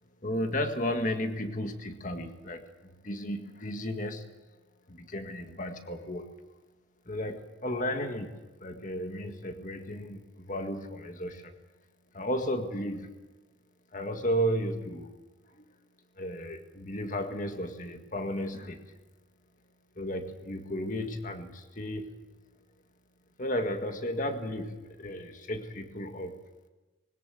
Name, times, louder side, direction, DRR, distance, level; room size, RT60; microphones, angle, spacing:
voice 1, 0.2-4.3 4.9-6.3 7.1-8.3 8.6-11.6 12.1-13.1 13.9-15.1 15.5-15.7 16.2-18.8 20.0-22.1 23.4-26.4, equal, 40° left, 6 dB, 1.8 m, -34 dB
21.5 x 19.0 x 7.8 m, 1.1 s
head